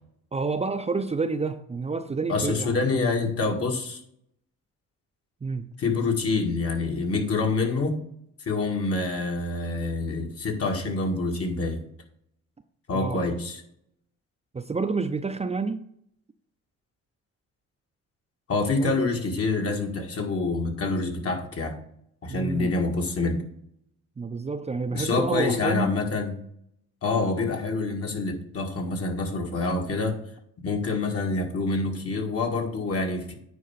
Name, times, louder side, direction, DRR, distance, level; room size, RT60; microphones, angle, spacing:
voice 1, 0.3-3.0 5.4-5.7 12.9-13.2 14.5-15.8 18.8-18.9 22.3-22.7 24.2-25.9, right 4 dB, 20° right, 7 dB, 0.6 m, -29 dB
voice 2, 2.3-4.0 5.8-8.0 8.5-11.8 12.9-13.6 18.5-21.8 22.2-23.4 24.9-26.3 27.0-30.2 30.6-33.4, left 3 dB, 50° left, 2 dB, 1.9 m, -26 dB
9.4 x 4.4 x 5.8 m, 0.70 s
cardioid pair, 90°, 30 cm